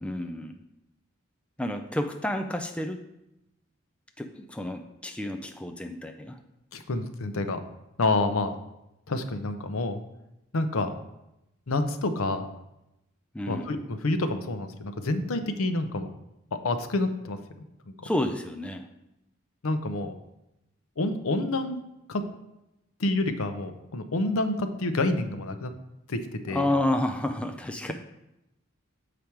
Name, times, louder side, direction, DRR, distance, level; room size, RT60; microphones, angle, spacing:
voice 1, 0.0-0.6 1.6-3.0 4.2-6.4 13.3-13.7 18.0-18.9 26.5-27.9, left 1 dB, 5° left, 5 dB, 0.3 m, -30 dB
voice 2, 6.7-7.6 8.0-8.5 9.1-10.0 10.5-10.9 11.7-12.5 13.5-16.1 16.6-17.4 19.6-20.1 21.0-21.8 22.1-22.2 23.0-25.7 26.1-26.7, left 2 dB, 75° left, 8 dB, 0.7 m, -28 dB
7.1 x 5.0 x 4.5 m, 0.88 s
head